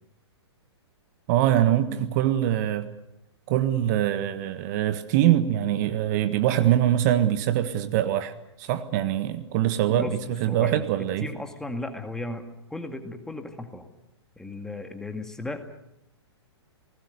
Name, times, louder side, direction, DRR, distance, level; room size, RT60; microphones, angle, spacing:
voice 1, 1.3-2.9 3.5-8.3 8.6-11.3, right 12 dB, 40° right, 10 dB, 1.5 m, -23 dB
voice 2, 9.9-10.8 11.2-12.5 12.7-13.9 14.4-15.6, left 2 dB, 5° left, 6 dB, 2.2 m, -35 dB
29.5 x 19.5 x 6.8 m, 0.86 s
figure-of-eight pair, 115°, 14 cm